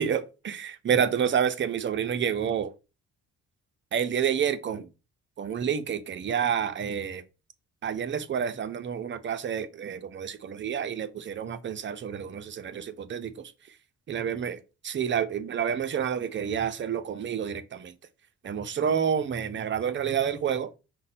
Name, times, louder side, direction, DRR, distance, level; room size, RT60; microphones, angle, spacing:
voice 1, 0.0-2.7 3.9-4.9 5.4-7.2 7.8-13.5 14.1-14.6 14.8-17.9 18.4-20.7, right 8 dB, 40° right, 0.6 m, -29 dB
5.2 x 2.2 x 4.0 m
cardioid pair, 90°, 30 cm